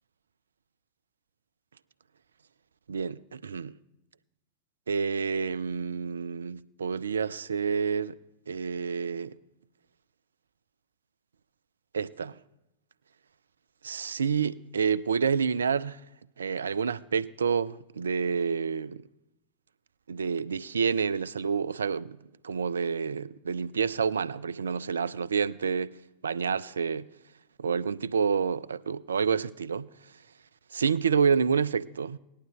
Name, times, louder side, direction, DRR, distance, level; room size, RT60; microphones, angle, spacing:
voice 1, 2.9-3.7 4.9-8.2 8.5-9.3 11.9-12.4 13.8-16.0 16.4-19.0 20.1-22.2 22.4-25.9 26.2-27.1 27.6-29.9 30.7-32.2, right 6 dB, 70° right, 0.3 m, -28 dB
18.5 x 11.5 x 3.0 m
figure-of-eight pair, 90°, 0 cm